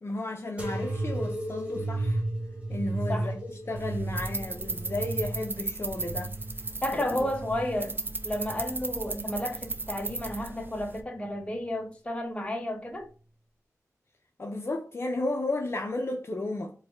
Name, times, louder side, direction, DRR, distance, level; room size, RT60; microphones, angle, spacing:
voice 1, 0.0-2.2 2.7-6.3 6.9-7.3 14.4-16.7, left 2 dB, 45° left, 0.7 m, -33 dB
sound 1, 0.6-7.8 8.3-9.1 9.8-10.4 11.3-11.5, right 2 dB, 20° right, 1.8 m, -34 dB
sound 2, 3.8-11.0, right 3 dB, 35° right, 0.6 m, -36 dB
voice 2, 6.8-13.1, left 1 dB, 20° left, 1.1 m, -32 dB
4.9 x 2.8 x 3.4 m
wide cardioid pair, 105°, 6 cm